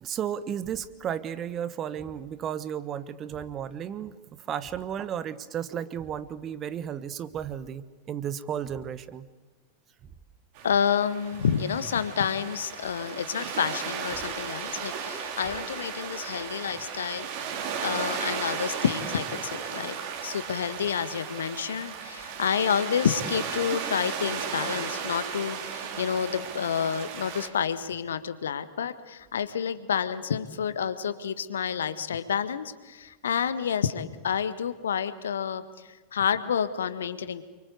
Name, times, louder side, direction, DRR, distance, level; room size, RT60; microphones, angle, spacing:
voice 1, 0.0-9.3, right 9 dB, 30° right, 14 dB, 1.4 m, -34 dB
sound 1, 10.5-27.5, right 7 dB, 45° right, 4.0 m, -35 dB
voice 2, 10.6-17.3 17.8-20.0 20.2-37.4, left 7 dB, 65° left, 13 dB, 1.5 m, -29 dB
29.0 x 24.0 x 8.2 m, 1.3 s
figure-of-eight pair, 90°, 0 cm